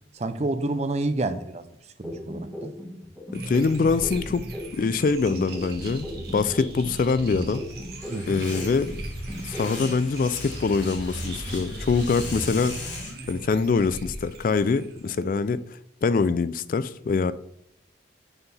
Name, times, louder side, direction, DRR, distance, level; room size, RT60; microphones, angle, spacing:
voice 1, 0.1-1.7 2.0-2.7 8.1-8.4 15.1-15.2, right 2 dB, 35° right, 0.5 m, -29 dB
sound 1, 2.0-5.0 5.3-9.0 9.3-10.0, left 1 dB, 5° right, 1.4 m, -37 dB
voice 2, 3.3-4.4 4.7-6.1 6.3-7.6 8.3-8.9 9.5-12.7 13.3-15.6 16.0-17.3, left 4 dB, 45° left, 0.3 m, -24 dB
sound 2, 3.3-15.3, right 1 dB, 55° right, 1.6 m, -37 dB
sound 3, 8.0-13.2, left 4 dB, 90° left, 2.2 m, -40 dB
6.6 x 4.5 x 5.5 m
head